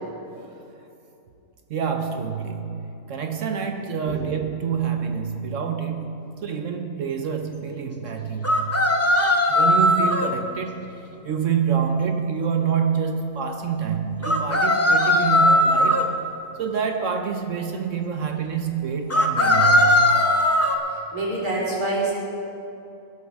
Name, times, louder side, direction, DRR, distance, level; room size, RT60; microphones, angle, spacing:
voice 1, 1.7-8.8 9.5-16.2 16.6-20.2, right 7 dB, 65° right, 5 dB, 1.0 m, -27 dB
sound 1, 8.4-10.3 14.2-16.0 19.1-20.7, left 1 dB, 15° left, 0.5 m, -18 dB
voice 2, 20.9-22.1, right 2 dB, 85° right, -8 dB, 4.7 m, -26 dB
20.5 x 11.0 x 3.5 m, 2.8 s
omnidirectional pair, 1.5 m